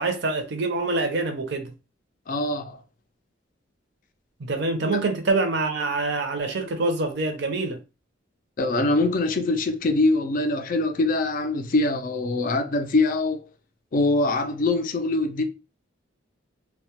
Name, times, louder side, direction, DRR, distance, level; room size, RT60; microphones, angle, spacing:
voice 1, 0.0-1.7 4.4-7.8, right 3 dB, 60° right, 0.6 m, -25 dB
voice 2, 2.3-2.8 8.6-13.4 13.9-15.4, left 2 dB, 45° left, 0.4 m, -23 dB
2.2 x 2.0 x 2.7 m
head